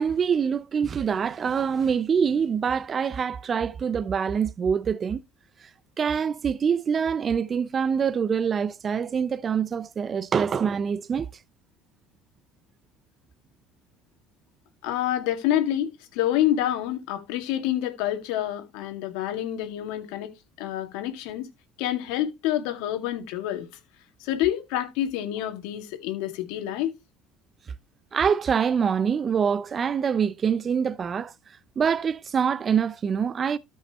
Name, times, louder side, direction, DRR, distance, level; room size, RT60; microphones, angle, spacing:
voice 1, 0.0-5.2 5.6-5.7 6.0-11.3 28.1-31.3 31.8-33.6, right 7 dB, 35° right, 0.5 m, -25 dB
voice 2, 14.8-20.3 20.6-21.5 21.8-23.7 24.2-26.9, left 12 dB, 80° left, 2.1 m, -27 dB
13.0 x 5.6 x 3.0 m
supercardioid pair, 90°, 0 cm